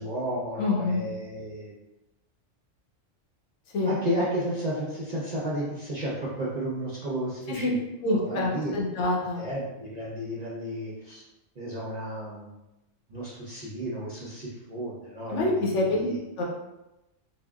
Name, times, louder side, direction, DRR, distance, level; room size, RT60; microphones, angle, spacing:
voice 1, 0.0-1.7 3.9-8.7 9.3-11.2 11.6-12.6 13.1-16.2, equal, 45° right, -6 dB, 0.5 m, -33 dB
voice 2, 0.6-1.0 3.7-3.9 7.6-7.7 8.0-9.4 15.3-15.8 16.4-16.5, left 2 dB, 75° left, -2 dB, 1.0 m, -26 dB
3.6 x 2.1 x 2.2 m, 0.95 s
omnidirectional pair, 1.3 m